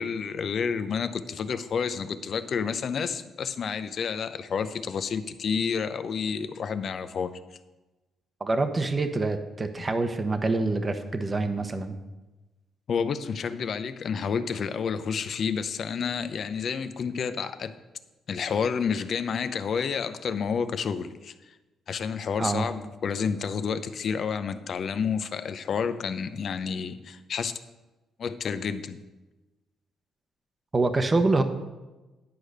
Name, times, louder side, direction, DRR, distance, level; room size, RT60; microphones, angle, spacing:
voice 1, 0.0-7.3 12.9-17.7 18.3-21.5 21.9-27.5 28.2-29.0, left 6 dB, 55° left, 11 dB, 0.6 m, -30 dB
voice 2, 8.4-11.9 22.4-22.7 30.7-31.4, right 3 dB, 25° right, 8 dB, 0.9 m, -26 dB
10.5 x 4.8 x 6.6 m, 1.1 s
cardioid pair, 90°, 0 cm